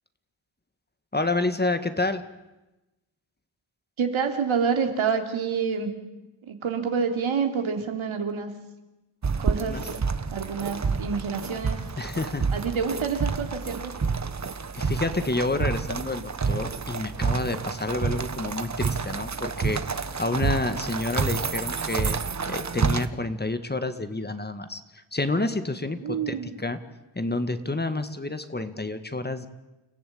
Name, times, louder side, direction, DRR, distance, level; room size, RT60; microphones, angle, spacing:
voice 1, 1.1-2.2 9.7-9.8 12.0-12.5 14.7-22.2 22.5-26.8 27.2-29.5, left 2 dB, 20° left, 10 dB, 1.8 m, -29 dB
voice 2, 4.0-5.9 6.4-8.5 9.4-9.9 10.3-11.8 12.5-14.0 26.0-26.6, right 6 dB, 75° right, 5 dB, 3.3 m, -28 dB
sound 1, 9.2-23.1, right 5 dB, 35° right, 1.4 m, -29 dB
29.5 x 15.0 x 8.7 m, 1.0 s
cardioid pair, 70°, 49 cm